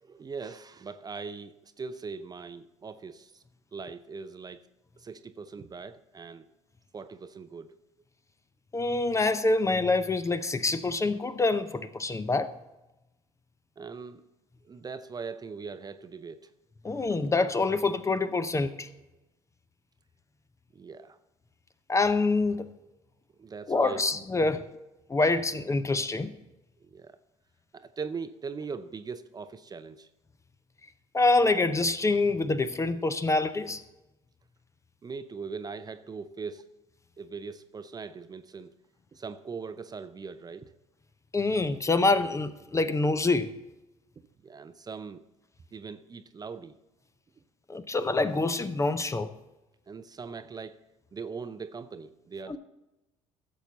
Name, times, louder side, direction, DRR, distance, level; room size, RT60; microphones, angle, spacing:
voice 1, 0.0-3.4 3.7-4.6 5.0-6.5 6.9-7.8 13.8-14.2 14.6-16.5 20.7-21.2 23.4-24.2 24.5-24.7 26.8-27.2 27.7-30.1 35.0-36.7 37.2-38.7 39.1-40.7 44.4-45.2 45.7-46.8 49.9-50.8 51.1-52.6, right 5 dB, 25° right, 12 dB, 0.6 m, -40 dB
voice 2, 8.7-12.5 16.8-18.9 21.9-22.7 23.7-24.6 25.1-26.3 31.1-33.8 41.3-43.6 47.7-49.3 52.5-52.6, left 3 dB, 20° left, 12 dB, 0.6 m, -26 dB
15.5 x 7.1 x 4.0 m, 0.98 s
figure-of-eight pair, 55°, 17 cm